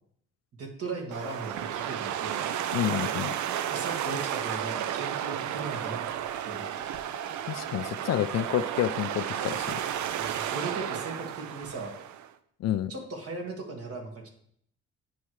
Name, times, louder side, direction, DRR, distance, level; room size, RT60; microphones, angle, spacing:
voice 1, 0.6-2.5 3.7-6.0 6.5-6.8 10.2-11.9 12.9-14.3, right 3 dB, 50° right, 2 dB, 1.8 m, -38 dB
sound 1, 1.1-12.3, right 10 dB, 70° right, 0.5 m, -33 dB
voice 2, 2.7-3.3 7.5-9.8 12.6-12.9, left 11 dB, 60° left, 13 dB, 0.4 m, -29 dB
10.0 x 4.6 x 3.2 m, 0.67 s
cardioid pair, 90°, 30 cm